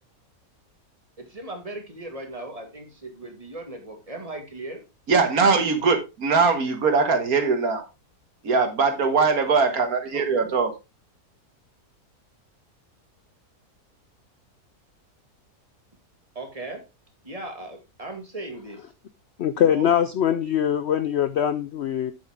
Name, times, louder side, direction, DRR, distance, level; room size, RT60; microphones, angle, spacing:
voice 1, 1.2-4.8 10.1-10.5 16.4-16.8 17.2-18.8 19.6-19.9, right 2 dB, 20° right, 2.1 m, -37 dB
voice 2, 5.1-7.8 8.4-10.7, right 4 dB, 65° right, 1.9 m, -21 dB
voice 3, 19.4-22.1, left 9 dB, 65° left, 0.6 m, -22 dB
8.8 x 7.9 x 3.6 m
omnidirectional pair, 1.7 m